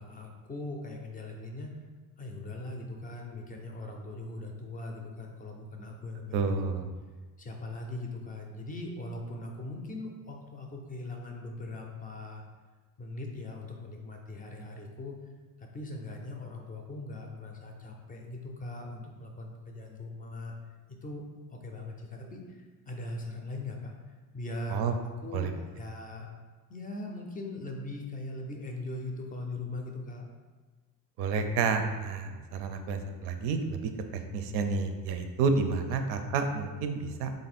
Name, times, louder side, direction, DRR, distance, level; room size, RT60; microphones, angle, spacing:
voice 1, 0.0-1.7 2.2-6.5 7.4-12.4 13.0-15.1 15.6-20.5 21.0-24.0 24.3-25.0 25.2-25.5 25.7-26.3 26.7-30.3, left 2 dB, 25° left, 2 dB, 0.4 m, -40 dB
voice 2, 6.3-6.9 24.7-24.9 25.3-25.5 31.2-33.8 34.1-37.3, right 4 dB, 85° right, 7 dB, 0.5 m, -30 dB
3.6 x 2.6 x 4.2 m, 1.3 s
cardioid pair, 135°, 39 cm